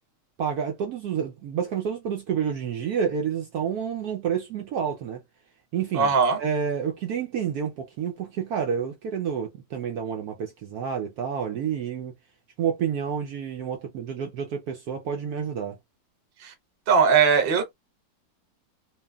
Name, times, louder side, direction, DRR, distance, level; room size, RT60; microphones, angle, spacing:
voice 1, 0.4-5.2 5.7-12.1 12.6-15.8, right 7 dB, 70° right, 1.0 m, -29 dB
voice 2, 5.9-6.4 16.4-16.5 16.9-17.7, right 6 dB, 45° right, 0.8 m, -20 dB
2.9 x 2.5 x 2.2 m
omnidirectional pair, 1.9 m